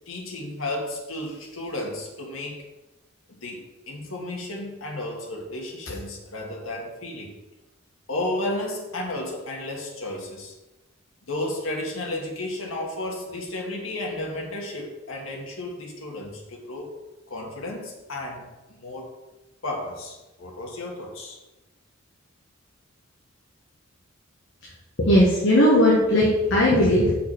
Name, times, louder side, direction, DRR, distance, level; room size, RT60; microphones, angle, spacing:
voice 1, 0.1-2.6 3.3-7.3 8.1-10.5 11.3-16.9 17.3-19.1 19.6-21.4, left 1 dB, 85° left, 0 dB, 1.5 m, -33 dB
voice 2, 25.0-27.1, left 1 dB, 65° left, -4 dB, 1.4 m, -18 dB
6.3 x 5.8 x 4.3 m, 1.1 s
head